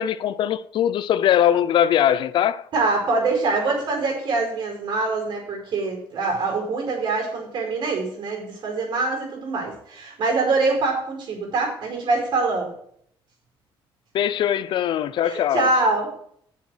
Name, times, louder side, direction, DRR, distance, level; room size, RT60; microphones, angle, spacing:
voice 1, 0.0-2.6 14.1-15.7, left 10 dB, 60° left, 0.6 m, -21 dB
voice 2, 2.7-12.7 15.2-16.1, right 3 dB, 55° right, 5.0 m, -24 dB
8.0 x 7.4 x 7.7 m
cardioid pair, 145°, 9 cm